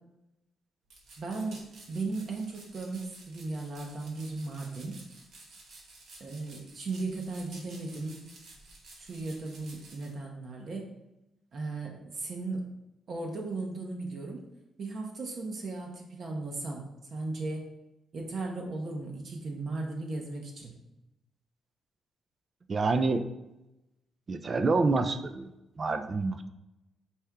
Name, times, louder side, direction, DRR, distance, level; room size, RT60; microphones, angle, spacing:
sound 1, 0.9-10.1, right 2 dB, 70° right, 1.1 m, -53 dB
voice 1, 1.2-1.6 1.9-5.0 6.2-8.2 9.0-10.9 11.5-12.7 13.1-14.5 14.8-16.8 17.1-17.7 18.1-20.8, right 3 dB, 50° right, 1 dB, 0.7 m, -36 dB
voice 2, 22.7-23.3 24.3-25.5 25.8-26.5, right 3 dB, 35° right, 9 dB, 0.4 m, -27 dB
4.3 x 3.4 x 3.5 m, 0.92 s
cardioid pair, 105°, 0 cm